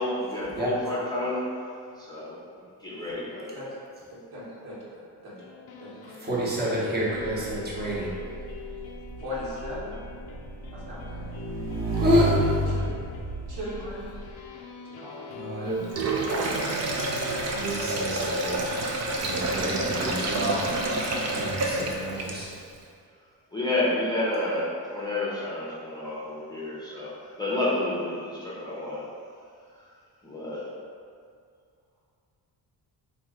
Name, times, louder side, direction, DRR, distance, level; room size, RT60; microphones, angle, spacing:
voice 1, 0.0-1.4 2.0-2.4 2.8-3.6 23.5-29.0 29.8-29.9 30.2-30.6, left 2 dB, 10° left, -8 dB, 0.7 m, -30 dB
voice 2, 3.2-3.8 4.1-5.4 5.8-6.3 9.2-9.9 10.7-11.3 12.7-13.2 13.5-14.2 14.7-15.3, left 1 dB, 65° right, -8 dB, 1.2 m, -39 dB
sound 1, 5.4-20.9, left 6 dB, 60° left, 0.5 m, -44 dB
voice 3, 6.2-8.2 12.0-12.3 15.3-15.8 17.5-18.7 19.1-20.7 21.2-22.5, equal, 25° right, -7 dB, 0.9 m, -28 dB
Motorcycle / Engine, 7.2-14.3, right 1 dB, 80° right, 0.8 m, -31 dB
Sink (filling or washing), 15.8-22.6, right 2 dB, 40° right, 0.5 m, -28 dB
3.0 x 2.4 x 3.7 m, 2.3 s
cardioid pair, 85°, 42 cm